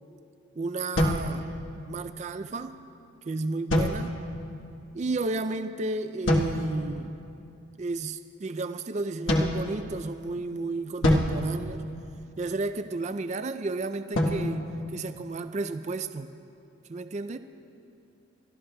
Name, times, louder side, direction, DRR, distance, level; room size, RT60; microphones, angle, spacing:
voice 1, 0.6-1.5 1.9-2.8 3.3-4.1 4.9-7.1 7.8-11.8 12.4-16.3 16.9-17.4, right 3 dB, 35° right, 10 dB, 0.3 m, -32 dB
sound 1, 1.0-2.0 3.7-4.5 6.3-6.9 9.3-10.3 11.0-12.5 14.1-15.7, left 1 dB, 75° left, 1.3 m, -28 dB
28.5 x 13.5 x 2.2 m, 2.6 s
head